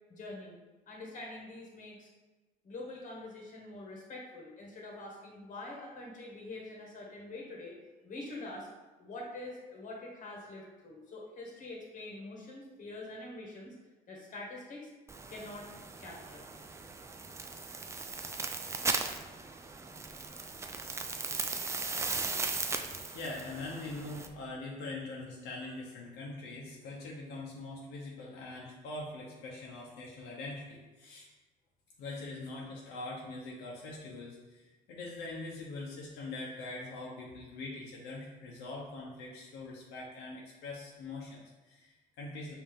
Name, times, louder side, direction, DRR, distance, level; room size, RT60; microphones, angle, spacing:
voice 1, 0.1-0.5 0.9-2.1 2.6-7.7 8.0-8.7 9.0-13.7 14.1-14.9 15.3-15.7 16.0-16.5, left 2 dB, 50° left, -2 dB, 1.3 m, -45 dB
sound 1, 15.1-24.3, right 4 dB, 15° right, 0.3 m, -37 dB
voice 2, 23.1-31.3 32.0-42.5, left 2 dB, 85° left, -3 dB, 0.8 m, -43 dB
5.3 x 2.8 x 3.5 m, 1.2 s
cardioid pair, 110°, 17 cm